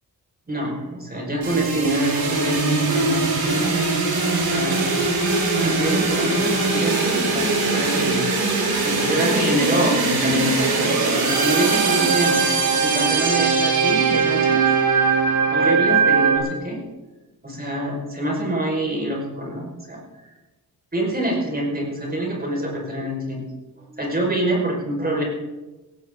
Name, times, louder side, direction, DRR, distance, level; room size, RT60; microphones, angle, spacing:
voice 1, 0.5-3.8 4.4-4.8 5.6-7.5 7.7-8.3 8.5-14.6 15.5-16.8 17.4-20.0 20.9-23.4 23.9-25.2, right 1 dB, 25° right, -2 dB, 5.4 m, -26 dB
sound 1, 1.4-16.4, right 4 dB, 75° right, 4.6 m, -20 dB
17.5 x 16.0 x 3.9 m, 1.1 s
wide cardioid pair, 120°, 38 cm